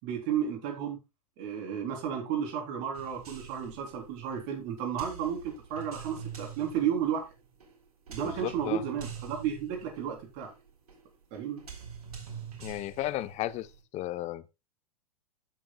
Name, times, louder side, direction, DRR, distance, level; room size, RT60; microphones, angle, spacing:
voice 1, 0.0-1.0 1.4-7.2 8.1-10.5 11.3-11.6, right 8 dB, 50° right, 3.5 m, -33 dB
sound 1, 2.9-13.8, right 7 dB, 80° right, 3.8 m, -46 dB
voice 2, 8.2-8.8 12.6-14.4, left 15 dB, 35° left, 0.8 m, -34 dB
15.0 x 7.3 x 2.3 m
hypercardioid pair, 105°, 19 cm